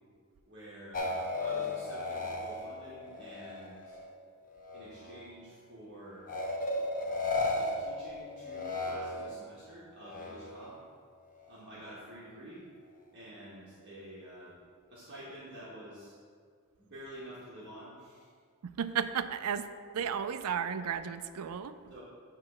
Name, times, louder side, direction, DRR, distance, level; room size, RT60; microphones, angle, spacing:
voice 1, 0.5-4.0 4.7-6.3 7.5-10.8 11.5-12.6 13.1-14.6 14.9-16.2 16.8-18.3 21.4-21.5 21.9-22.0, right 1 dB, 50° right, -8 dB, 1.5 m, -49 dB
sound 1, 0.9-4.1 4.5-5.3 6.3-9.5 10.0-10.8, left 2 dB, 40° left, 0.7 m, -35 dB
voice 2, 18.6-19.7 19.9-21.7, right 7 dB, 90° right, 11 dB, 0.4 m, -33 dB
9.0 x 3.2 x 5.8 m, 2.1 s
head